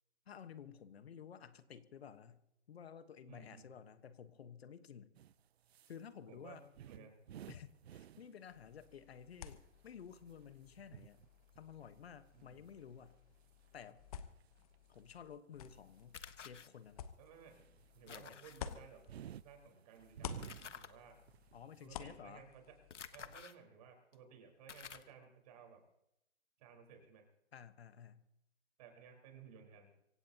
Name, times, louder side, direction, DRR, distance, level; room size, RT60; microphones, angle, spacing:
voice 1, 0.3-2.4 2.7-5.1 5.9-6.6 7.5-11.2 11.6-13.2 13.7-14.0 14.9-17.1 18.1-18.4 21.5-22.4 27.5-28.2, left 8 dB, 60° left, 11 dB, 1.3 m, -53 dB
voice 2, 3.3-3.7 6.3-7.1 12.3-12.6 17.2-17.6 17.9-19.0 19.4-20.4 20.7-21.2 21.8-22.8 23.1-25.8 26.6-27.2 28.8-29.9, right 7 dB, 35° right, 3 dB, 4.3 m, -57 dB
sound 1, 5.1-6.0 6.4-8.4 8.8-9.2 9.5-15.2 15.7-16.2 16.5-16.7 17.3-21.0 21.3-21.9, right 10 dB, 65° right, 0.5 m, -54 dB
sound 2, 8.5-19.7 20.0-23.4, left 8 dB, 30° left, 1.0 m, -53 dB
sound 3, 16.1-16.7 18.1-18.6 20.4-20.9 22.9-23.5 24.1-24.2 24.7-25.1, left 7 dB, 85° left, 1.4 m, -51 dB
25.0 x 16.5 x 2.9 m, 0.80 s
hypercardioid pair, 155°, 35 cm